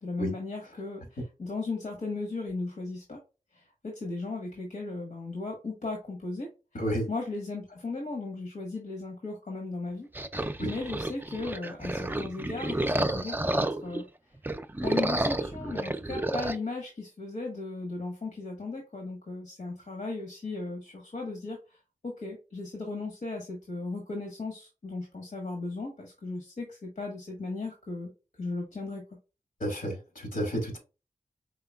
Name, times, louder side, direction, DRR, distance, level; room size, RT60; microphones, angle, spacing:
voice 1, 0.0-3.2 3.5-6.8 7.1-10.1 10.6-14.1 14.8-21.8 22.0-28.1 28.4-29.0, left 3 dB, 65° left, 1.3 m, -36 dB
voice 2, 6.7-7.1 10.6-10.7 29.6-30.8, equal, 85° left, 2.2 m, -31 dB
sound 1, 10.2-14.0 14.4-16.6, right 1 dB, 15° right, 0.4 m, -30 dB
4.9 x 3.4 x 2.3 m
cardioid pair, 40°, 14 cm